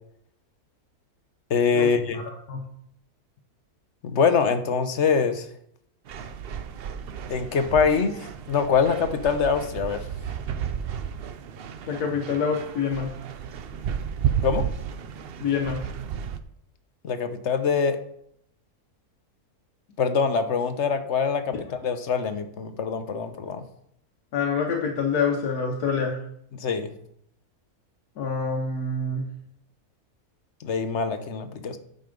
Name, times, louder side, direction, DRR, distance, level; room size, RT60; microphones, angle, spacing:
voice 1, 1.5-2.2 4.0-5.5 7.3-10.0 14.4-14.6 17.0-18.0 20.0-23.6 26.6-26.9 30.6-31.8, left 6 dB, 55° left, 9 dB, 1.0 m, -24 dB
sound 1, 6.1-16.4, right 8 dB, 65° right, 0.6 m, -32 dB
voice 2, 11.9-13.1 15.4-15.8 24.3-26.2 28.2-29.3, left 5 dB, 85° left, 1 dB, 1.5 m, -26 dB
9.3 x 5.4 x 5.1 m, 0.71 s
omnidirectional pair, 1.6 m